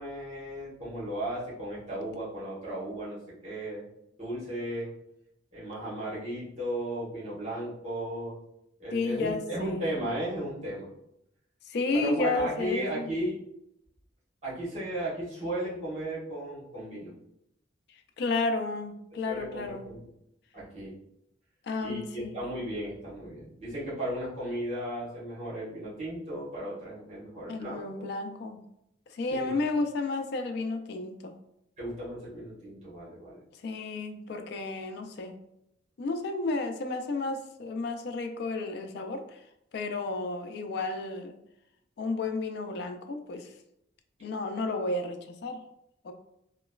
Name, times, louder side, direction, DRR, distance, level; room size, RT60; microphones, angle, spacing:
voice 1, 0.0-3.2 3.4-3.9 4.2-4.9 5.5-8.4 8.8-10.9 11.9-13.3 14.4-17.1 19.3-20.1 20.5-20.9 21.8-28.1 29.3-29.5 31.8-33.4 34.3-34.4, right 1 dB, 35° right, -8 dB, 1.2 m, -35 dB
voice 2, 8.9-9.9 11.7-13.1 18.2-19.9 21.7-22.4 27.5-28.6 29.1-31.3 33.6-35.3 36.0-39.4 39.7-41.3 42.0-43.5 44.2-45.6 46.0-46.1, left 3 dB, 55° left, 6 dB, 0.3 m, -32 dB
3.0 x 2.1 x 2.2 m, 0.79 s
head